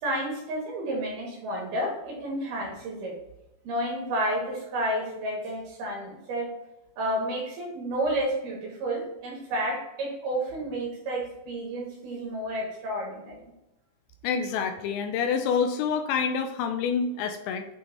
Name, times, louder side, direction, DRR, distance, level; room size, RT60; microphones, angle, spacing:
voice 1, 0.0-3.1 3.6-6.5 7.0-13.5, right 1 dB, 70° right, -2 dB, 2.6 m, -31 dB
voice 2, 14.2-17.7, left 6 dB, 85° left, 7 dB, 2.6 m, -27 dB
8.5 x 3.2 x 3.5 m, 0.93 s
omnidirectional pair, 5.5 m